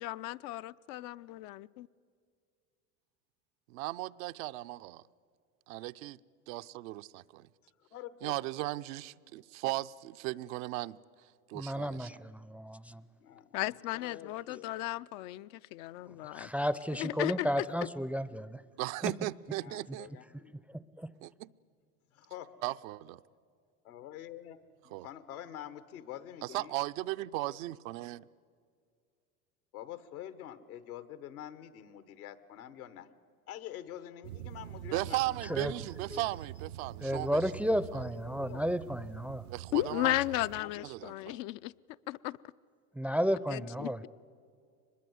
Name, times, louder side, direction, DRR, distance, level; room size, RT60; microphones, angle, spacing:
voice 1, 0.0-1.9 13.5-16.5 17.0-17.7 39.7-41.7 42.1-42.4 43.5-44.1, left 16 dB, 60° left, 14 dB, 0.6 m, -35 dB
voice 2, 3.7-5.0 5.7-6.2 6.5-7.5 8.2-11.0 11.5-12.1 18.8-20.1 21.2-21.5 22.6-23.2 24.9-25.1 26.4-28.2 34.9-37.4 39.5-40.1 40.8-41.4, right 17 dB, 70° right, 12 dB, 0.6 m, -37 dB
voice 3, 7.9-8.4 13.2-13.5 13.9-14.7 19.6-20.5 22.1-22.5 23.8-24.6 24.8-26.8 29.7-33.1 33.5-35.4 36.1-36.2 38.3-38.6 40.5-41.3, left 11 dB, 80° left, 13 dB, 1.4 m, -46 dB
voice 4, 11.5-13.0 16.1-18.6 19.0-19.1 20.7-21.1 35.5-35.7 36.1-36.2 37.0-39.4 42.9-44.1, equal, 5° right, 16 dB, 0.5 m, -33 dB
sound 1, 34.2-40.6, right 11 dB, 85° right, 0.9 m, -45 dB
23.5 x 21.0 x 7.9 m, 2.3 s
hypercardioid pair, 85°, 43 cm